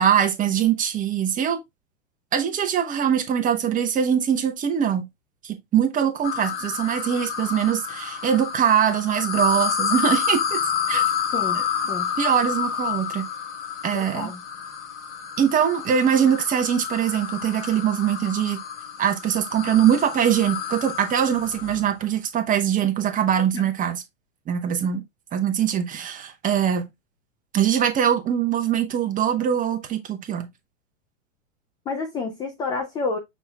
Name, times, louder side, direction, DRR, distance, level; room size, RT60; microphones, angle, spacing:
voice 1, 0.0-1.6 2.3-5.0 5.4-10.6 10.9-11.0 11.5-11.6 12.2-13.2 13.8-14.3 15.4-18.6 19.0-24.0 24.5-25.0 25.3-26.9 27.5-30.5, right 9 dB, 20° right, 0.8 m, -22 dB
sound 1, 6.2-21.9, left 8 dB, 60° left, 1.8 m, -29 dB
voice 2, 13.9-14.4 23.5-23.6 31.9-33.2, left 3 dB, 10° left, 0.3 m, -29 dB
6.2 x 3.5 x 2.2 m
hypercardioid pair, 115°, 38 cm